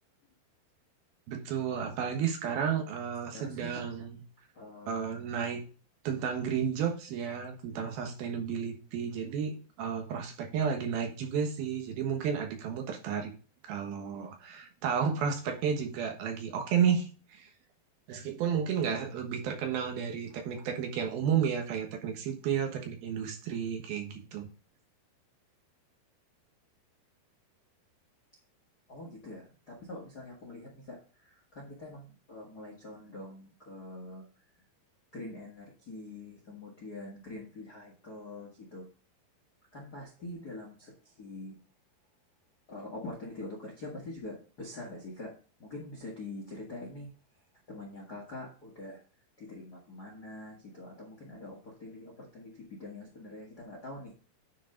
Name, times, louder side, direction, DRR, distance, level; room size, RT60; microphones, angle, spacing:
voice 1, 1.3-4.2 4.9-5.6 6.0-13.3 13.7-17.5 18.1-24.5, right 7 dB, 70° right, 3 dB, 3.0 m, -32 dB
voice 2, 3.3-3.9 4.5-5.0 20.3-20.4 28.9-34.3 35.1-38.9 39.7-41.6 42.7-45.3 45.6-47.1 47.7-49.0 49.4-54.1, left 2 dB, 45° left, -1 dB, 1.3 m, -44 dB
10.0 x 4.7 x 3.8 m, 0.37 s
omnidirectional pair, 4.7 m